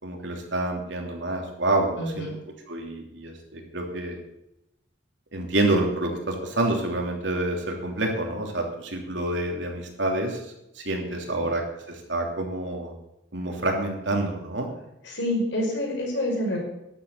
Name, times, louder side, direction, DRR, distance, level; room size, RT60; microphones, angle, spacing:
voice 1, 0.0-2.3 2.7-4.2 5.3-10.4 10.8-11.6 11.9-12.9 13.3-14.7, right 2 dB, 70° right, 2 dB, 3.0 m, -27 dB
voice 2, 2.0-2.4 11.4-11.5 15.0-16.6, left 1 dB, 75° left, -1 dB, 5.5 m, -27 dB
12.0 x 7.9 x 8.4 m, 0.86 s
head